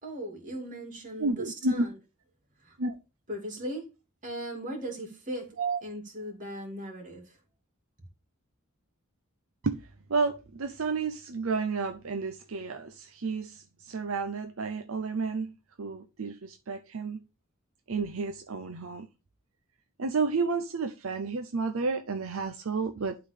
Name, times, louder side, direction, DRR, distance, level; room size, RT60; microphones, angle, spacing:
voice 1, 0.0-1.9 2.6-2.8 3.3-3.9 4.2-5.5 5.8-7.4, right 1 dB, 40° right, 2.6 m, -38 dB
voice 2, 1.2-1.9 2.8-2.9 5.6-5.8 9.6-9.8 10.1-17.2 17.9-19.1 20.0-23.2, right 4 dB, 80° right, 0.7 m, -31 dB
11.5 x 3.9 x 3.4 m
head